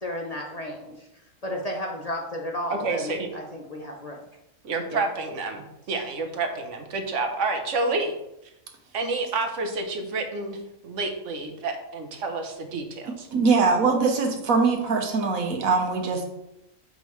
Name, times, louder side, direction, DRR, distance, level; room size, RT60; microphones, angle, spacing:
voice 1, 0.0-1.1 1.4-4.2 4.9-5.1, left 1 dB, 35° left, 0 dB, 0.7 m, -33 dB
voice 2, 2.7-3.3 4.6-8.1 8.9-10.6 10.8-13.3, right 3 dB, 65° right, 5 dB, 1.2 m, -29 dB
voice 3, 13.3-16.2, right 4 dB, 85° right, 2 dB, 1.4 m, -22 dB
7.4 x 5.3 x 3.1 m, 0.87 s
omnidirectional pair, 1.4 m